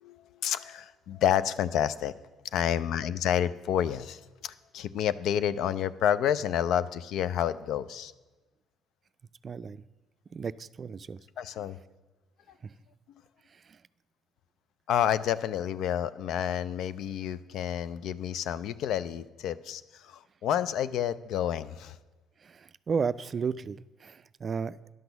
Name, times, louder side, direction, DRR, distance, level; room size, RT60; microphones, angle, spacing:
voice 1, 0.0-2.1 2.5-8.1 11.4-11.8 14.9-22.0, left 10 dB, 70° left, 15 dB, 0.4 m, -29 dB
voice 2, 9.4-9.8 10.3-11.2 22.4-24.8, right 5 dB, 40° right, 16 dB, 0.3 m, -33 dB
11.0 x 6.1 x 6.9 m, 1.2 s
supercardioid pair, 80°, 0 cm